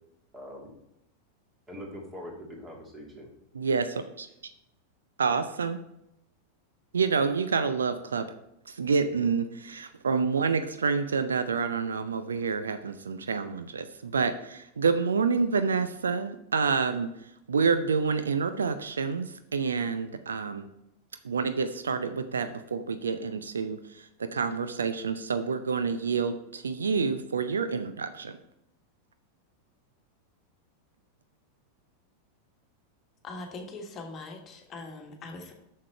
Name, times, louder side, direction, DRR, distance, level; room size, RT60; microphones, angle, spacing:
voice 1, 0.3-0.7 1.7-3.3, equal, 20° right, -1 dB, 2.6 m, -42 dB
voice 2, 3.5-4.3 5.2-5.8 6.9-8.3 8.7-17.1 17.5-20.7 21.2-28.4, right 5 dB, 70° right, 10 dB, 0.5 m, -28 dB
voice 3, 33.2-35.5, left 2 dB, 30° left, 2 dB, 1.5 m, -41 dB
7.5 x 6.6 x 4.4 m, 0.82 s
figure-of-eight pair, 90°, 0 cm